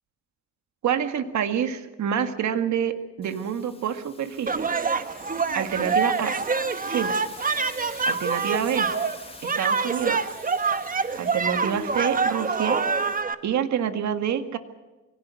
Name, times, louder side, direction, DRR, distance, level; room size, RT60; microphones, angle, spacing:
voice 1, 0.8-4.7 5.5-6.4 6.9-7.2 8.1-8.9 9.4-10.3 11.2-12.8 13.4-14.6, right 8 dB, 65° right, 9 dB, 1.9 m, -27 dB
sound 1, 3.2-13.2, left 3 dB, 20° left, 2.7 m, -46 dB
sound 2, 4.5-13.3, right 4 dB, 30° right, 1.4 m, -26 dB
24.0 x 17.5 x 8.3 m, 1.2 s
cardioid pair, 90°, 30 cm